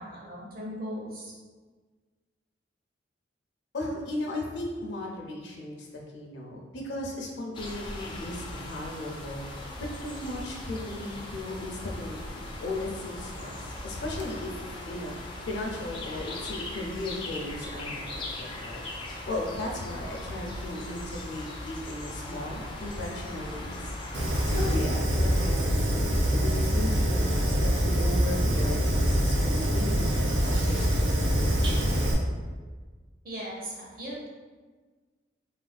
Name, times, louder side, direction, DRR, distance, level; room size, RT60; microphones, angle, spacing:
voice 1, 0.0-1.3 33.2-34.3, equal, 50° right, -4 dB, 0.7 m, -38 dB
voice 2, 3.7-5.9 6.1-18.8 19.3-23.9 24.5-31.9, left 1 dB, 85° left, -1 dB, 0.5 m, -36 dB
sound 1, 7.5-24.8, left 1 dB, 25° left, 0.3 m, -39 dB
Fire, 24.1-32.1, equal, 85° right, 0.6 m, -25 dB
3.4 x 2.4 x 2.2 m, 1.4 s
head